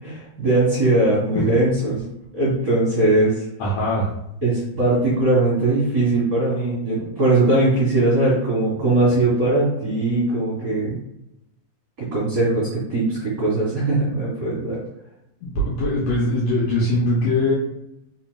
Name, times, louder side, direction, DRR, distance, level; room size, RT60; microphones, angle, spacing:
voice 1, 0.0-2.0 2.3-3.4 4.4-11.0 12.0-14.8, right 2 dB, 45° right, -6 dB, 1.4 m, -20 dB
voice 2, 3.6-4.1 15.4-17.5, left 1 dB, 75° left, -5 dB, 1.5 m, -21 dB
4.0 x 3.8 x 2.2 m, 0.83 s
omnidirectional pair, 3.6 m